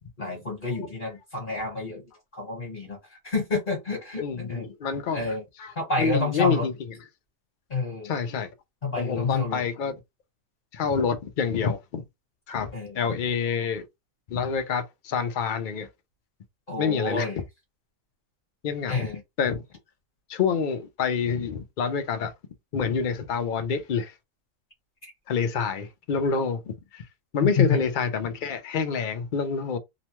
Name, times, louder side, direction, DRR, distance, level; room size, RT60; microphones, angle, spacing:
voice 1, 0.2-3.0 3.2-4.7 5.1-5.4 5.8-6.7 7.7-8.1 8.8-9.6 12.7-13.0 16.7-17.4 18.9-19.2 25.0-25.1 27.6-27.8, left 3 dB, 40° left, 1.3 m, -28 dB
voice 2, 4.2-6.7 8.0-8.5 9.0-10.0 10.7-12.0 12.5-13.8 14.3-15.9 16.8-17.3 18.6-19.1 19.4-19.6 20.3-22.3 22.7-24.1 25.3-27.1 27.3-29.8, left 6 dB, 60° left, 0.5 m, -27 dB
2.9 x 2.2 x 2.9 m
omnidirectional pair, 1.4 m